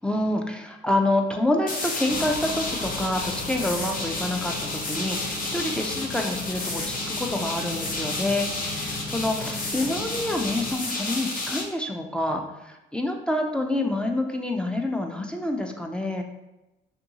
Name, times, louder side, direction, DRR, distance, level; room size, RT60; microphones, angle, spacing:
voice 1, 0.0-16.2, left 1 dB, 5° left, 2 dB, 0.3 m, -27 dB
sound 1, 1.7-11.6, left 2 dB, 45° left, 0.6 m, -31 dB
sound 2, 2.1-10.7, left 2 dB, 80° left, 0.6 m, -37 dB
2.6 x 2.6 x 2.7 m, 0.97 s
cardioid pair, 90°, 20 cm